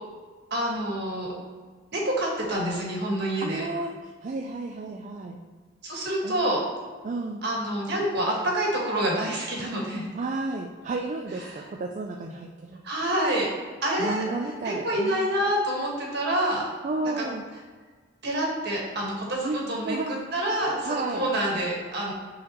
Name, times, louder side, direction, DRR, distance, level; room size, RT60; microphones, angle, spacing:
voice 1, 0.5-1.3 1.9-3.6 5.8-6.6 7.4-10.1 11.5-11.6 12.8-13.5 13.8-14.2 14.6-16.6 17.2-17.3 18.2-22.1, right 1 dB, 60° right, -2 dB, 1.7 m, -27 dB
voice 2, 3.4-5.4 6.2-6.5 7.0-7.4 10.1-12.8 14.0-15.3 16.8-17.4 19.4-20.2 20.8-21.2, right 3 dB, 40° right, 2 dB, 0.4 m, -32 dB
9.0 x 4.0 x 3.0 m, 1.5 s
head